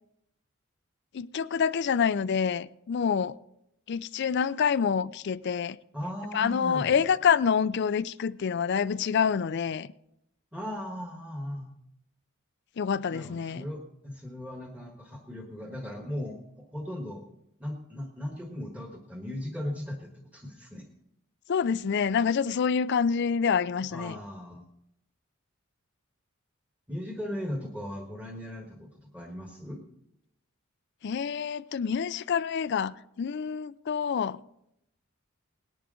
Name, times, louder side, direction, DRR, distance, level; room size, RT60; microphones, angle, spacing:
voice 1, 1.1-3.3 3.9-5.8 6.3-9.9 12.8-13.6 21.5-24.2 31.0-34.4, left 6 dB, 55° left, 0.4 m, -27 dB
voice 2, 5.9-7.0 10.5-11.7 13.1-16.4 16.7-17.2 17.6-20.8 23.9-24.6 26.9-29.8, left 1 dB, 5° right, 1.3 m, -37 dB
18.5 x 10.5 x 3.8 m
head